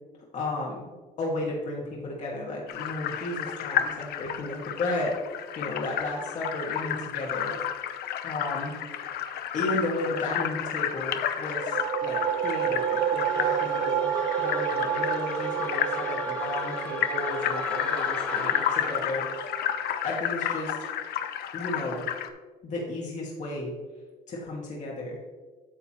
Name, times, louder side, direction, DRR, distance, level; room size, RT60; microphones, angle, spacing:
voice 1, 0.3-0.8 1.2-5.1 5.6-7.5 8.2-8.7 9.5-14.1 14.4-19.5 20.0-20.7 21.5-22.0 22.6-23.7 24.3-25.2, left 2 dB, 45° left, -3 dB, 1.7 m, -33 dB
sound 1, 2.7-22.3, left 10 dB, 70° left, 0.6 m, -31 dB
sound 2, 11.4-20.9, right 9 dB, 55° right, 0.4 m, -30 dB
sound 3, 12.1-19.3, left 1 dB, 5° left, 1.5 m, -38 dB
8.7 x 6.9 x 2.9 m, 1.3 s
cardioid pair, 110°, 17 cm